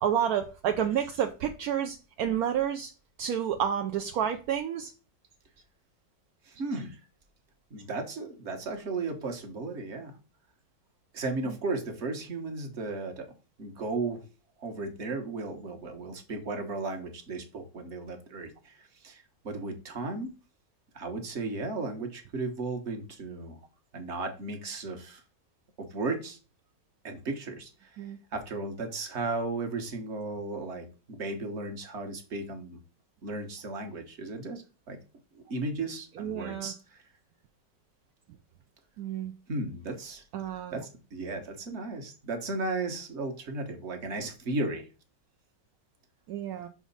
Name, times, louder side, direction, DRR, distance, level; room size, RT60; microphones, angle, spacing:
voice 1, 0.0-2.9 3.2-4.9 11.4-11.5 28.0-28.2 36.2-36.7 39.0-39.3 40.3-40.8 46.3-46.7, right 9 dB, 70° right, 0.9 m, -30 dB
voice 2, 6.5-6.9 7.7-10.1 11.1-13.3 13.6-14.2 14.6-20.3 20.9-23.6 23.9-25.2 25.8-26.4 27.0-27.7 28.3-32.8 33.2-35.0 35.5-37.0 39.5-40.2 40.7-44.9, right 3 dB, 40° right, 1.3 m, -35 dB
6.1 x 3.6 x 5.4 m
omnidirectional pair, 2.0 m